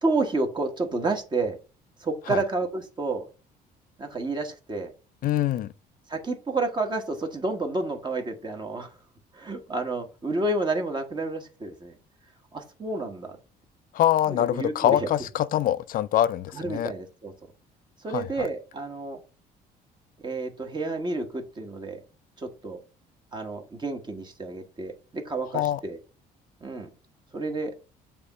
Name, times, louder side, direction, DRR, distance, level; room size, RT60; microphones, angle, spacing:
voice 1, 0.0-1.6 2.0-3.3 4.0-4.9 6.1-8.9 9.3-12.0 12.5-13.4 14.3-15.1 16.5-17.3 18.0-19.2 20.2-22.0 22.4-22.8 23.3-26.0 26.6-26.9 27.3-27.7, right 3 dB, 25° right, 1.3 m, -30 dB
voice 2, 5.2-5.7 13.9-16.9 18.1-18.5 25.5-25.8, left 12 dB, 55° left, 0.4 m, -24 dB
6.8 x 3.0 x 5.3 m
cardioid pair, 110°, 17 cm